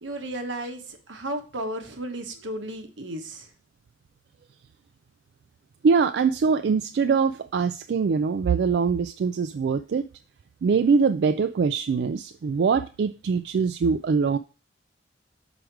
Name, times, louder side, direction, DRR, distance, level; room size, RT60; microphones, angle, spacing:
voice 1, 0.0-3.5, right 1 dB, 85° right, 6 dB, 1.2 m, -34 dB
voice 2, 5.8-10.1 10.6-14.4, right 5 dB, 60° right, 10 dB, 0.3 m, -23 dB
6.3 x 5.0 x 4.5 m, 0.35 s
head